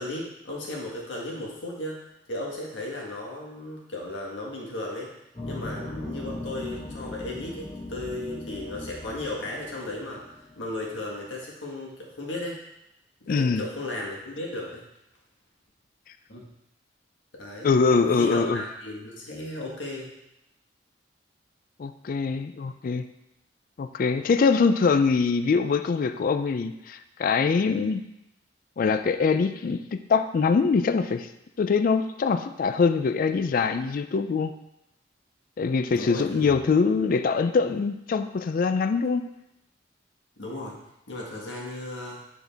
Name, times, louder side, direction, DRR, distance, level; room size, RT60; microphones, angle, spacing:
voice 1, 0.0-2.0 2.3-5.1 5.4-12.6 13.2-14.8 16.3-16.4 17.4-20.1 35.9-36.5 40.4-40.7 41.1-42.2, left 1 dB, 80° left, -2 dB, 1.7 m, -35 dB
sound 1, 5.3-11.4, left 2 dB, 30° left, 2.0 m, -39 dB
voice 2, 13.3-13.6 17.6-18.6 21.8-23.0 23.8-28.0 28.8-31.3 31.6-34.5 35.6-39.3, left 5 dB, 50° left, 10 dB, 0.3 m, -23 dB
9.4 x 3.9 x 3.4 m, 0.85 s
head